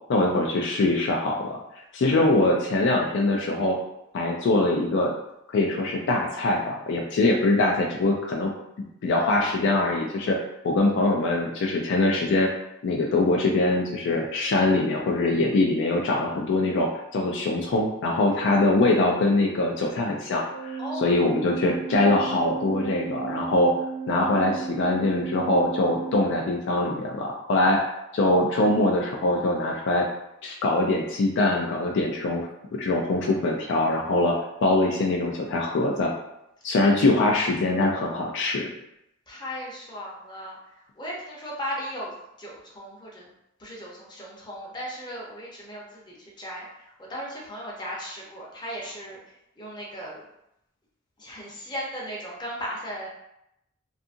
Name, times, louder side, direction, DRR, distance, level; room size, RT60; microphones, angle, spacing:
voice 1, 0.1-1.6 1.9-3.8 4.1-5.1 5.5-8.5 9.0-10.4 10.6-12.5 12.8-23.7 24.1-27.8 28.1-30.1 30.4-36.1 36.6-38.7, left 2 dB, 60° left, 0 dB, 0.3 m, -23 dB
Organ, 20.5-27.0, right 6 dB, 85° right, 0.3 m, -35 dB
voice 2, 20.8-21.2 39.3-43.3 43.6-50.2 51.2-53.1, equal, 20° left, -4 dB, 0.6 m, -37 dB
2.7 x 2.4 x 2.5 m, 0.84 s
head